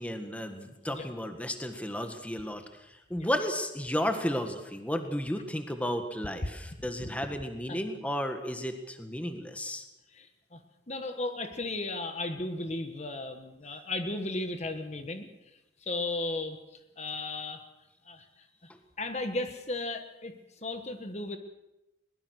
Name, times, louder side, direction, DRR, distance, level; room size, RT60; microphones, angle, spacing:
voice 1, 0.0-9.8, equal, 5° left, 6 dB, 1.7 m, -33 dB
voice 2, 10.1-10.6 10.9-15.3 15.8-16.6 17.0-17.6 18.1-18.2 18.6-18.7 19.0-20.3 20.6-21.4, left 2 dB, 35° left, 7 dB, 1.4 m, -35 dB
21.5 x 20.5 x 6.5 m, 0.95 s
head